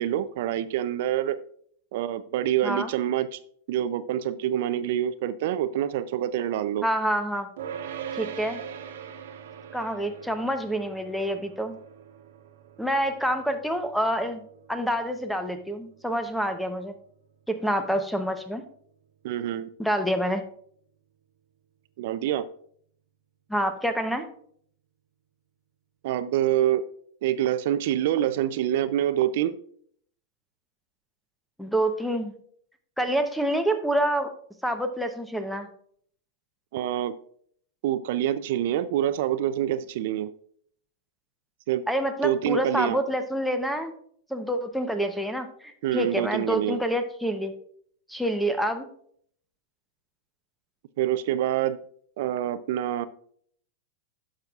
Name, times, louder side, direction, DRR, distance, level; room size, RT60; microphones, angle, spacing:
voice 1, 0.0-1.4 1.9-3.4 3.7-6.9 19.2-19.7 22.0-22.5 26.0-26.8 27.2-29.6 36.7-37.2 37.8-40.3 41.7-41.8 42.2-43.0 45.8-46.8 51.0-51.8 52.2-53.1, right 11 dB, 60° right, 13 dB, 0.4 m, -26 dB
voice 2, 6.8-7.5 8.1-8.6 9.7-11.8 12.8-14.4 14.7-16.9 17.5-18.6 19.8-20.4 23.5-24.3 31.6-32.3 33.0-34.3 34.6-35.7 41.9-43.9 44.3-47.5 48.1-48.9, equal, ahead, 8 dB, 0.8 m, -27 dB
sound 1, 7.6-18.9, right 8 dB, 80° right, 1.1 m, -43 dB
10.5 x 6.2 x 2.4 m, 0.62 s
hypercardioid pair, 135°, 0 cm